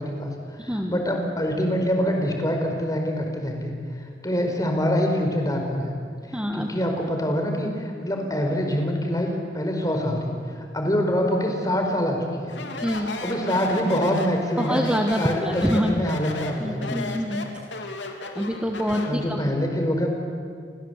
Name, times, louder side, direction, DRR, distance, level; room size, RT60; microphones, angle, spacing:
voice 1, 0.0-3.7 4.2-5.9 6.5-12.6 13.2-14.8 15.2-17.2 19.1-20.1, equal, 20° left, 3 dB, 4.6 m, -25 dB
voice 2, 0.6-1.0 6.3-6.7 12.8-13.1 14.6-16.0 16.6-17.4 18.3-19.4, equal, 5° right, 2 dB, 1.4 m, -26 dB
Speech, 12.5-19.2, left 3 dB, 80° left, 3.1 m, -34 dB
29.5 x 24.5 x 8.2 m, 2.2 s
head